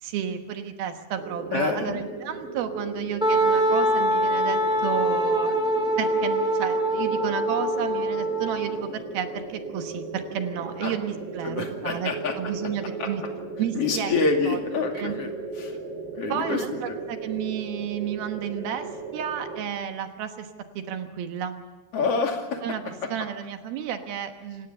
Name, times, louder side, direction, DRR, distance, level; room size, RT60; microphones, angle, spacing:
voice 1, 0.0-5.6 6.0-13.2 13.6-14.1 14.4-14.6 14.9-15.1 16.3-18.9 19.1-20.5 20.8-21.6 22.6-24.7, right 9 dB, 70° right, 7 dB, 2.9 m, -32 dB
sound 1, 1.2-19.6, right 3 dB, 35° right, 5.2 m, -37 dB
voice 2, 1.5-2.0 10.8-10.9 11.4-12.3 13.0-13.1 13.7-15.3 15.6-15.8 16.2-17.0 21.9-22.6 23.0-23.1, left 4 dB, 40° left, 3 dB, 2.9 m, -27 dB
Wind instrument woodwind instrument, 3.2-8.8, right 1 dB, ahead, 1.7 m, -24 dB
27.5 x 17.0 x 6.9 m, 1.2 s
omnidirectional pair, 4.8 m